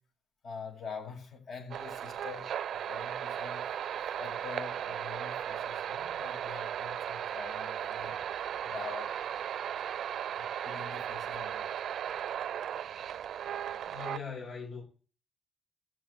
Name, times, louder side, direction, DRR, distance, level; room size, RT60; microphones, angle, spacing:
voice 1, 0.4-3.6 4.2-8.2 8.6-9.2 10.4-11.6, left 6 dB, 60° left, 6.8 m, -45 dB
sound 1, 1.7-14.2, right 9 dB, 65° right, 0.5 m, -36 dB
voice 2, 13.9-14.8, left 6 dB, 85° left, 5.6 m, -40 dB
14.5 x 6.6 x 9.7 m
cardioid pair, 120°, 0 cm